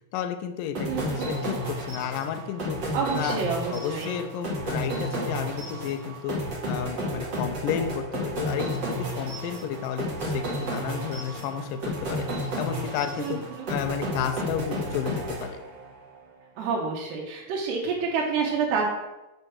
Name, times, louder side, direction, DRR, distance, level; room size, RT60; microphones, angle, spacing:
voice 1, 0.1-3.4 3.7-6.4 6.7-11.8 12.1-13.4 13.7-15.6, left 9 dB, 85° left, 7 dB, 2.0 m, -32 dB
sound 1, 0.7-16.0, equal, 40° right, 1.8 m, -32 dB
voice 2, 0.9-1.3 2.9-4.2 13.2-13.7 16.6-18.8, right 5 dB, 85° right, -2 dB, 3.2 m, -28 dB
8.0 x 4.9 x 6.1 m, 1.0 s
omnidirectional pair, 4.6 m